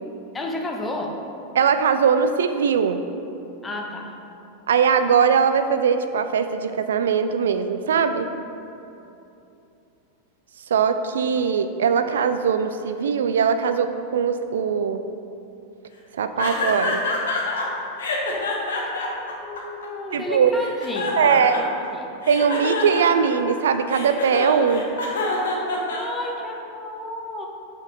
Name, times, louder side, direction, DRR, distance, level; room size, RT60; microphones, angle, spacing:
voice 1, 0.3-1.2 3.6-4.1 19.3-22.1 25.9-27.5, left 1 dB, 15° left, 1 dB, 0.7 m, -32 dB
voice 2, 1.5-3.0 4.7-8.3 10.7-15.0 16.1-17.0 20.1-20.5 21.2-21.7 22.3-24.9, right 6 dB, 65° right, 9 dB, 0.3 m, -20 dB
sound 1, 16.4-17.7 18.0-20.1 20.6-21.9 22.2-26.5, left 3 dB, 65° left, 0.8 m, -27 dB
5.3 x 5.2 x 3.8 m, 2.8 s
figure-of-eight pair, 90°, 0 cm